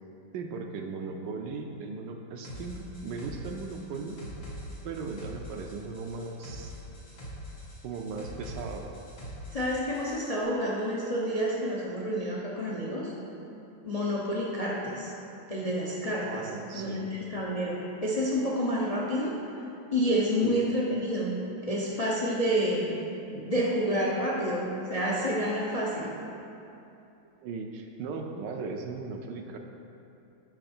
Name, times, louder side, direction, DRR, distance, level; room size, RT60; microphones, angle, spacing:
voice 1, 0.3-4.2 4.8-6.7 7.8-8.9 16.2-17.0 20.4-20.6 27.4-29.6, right 4 dB, 75° right, 3 dB, 1.2 m, -37 dB
sound 1, 2.4-10.3, equal, 85° left, 2.6 m, -43 dB
voice 2, 9.5-13.1 13.8-15.1 15.5-19.3 19.9-21.3 21.6-23.0 23.3-26.1, equal, 50° left, -4 dB, 0.4 m, -29 dB
8.9 x 5.5 x 4.3 m, 2.7 s
omnidirectional pair, 2.1 m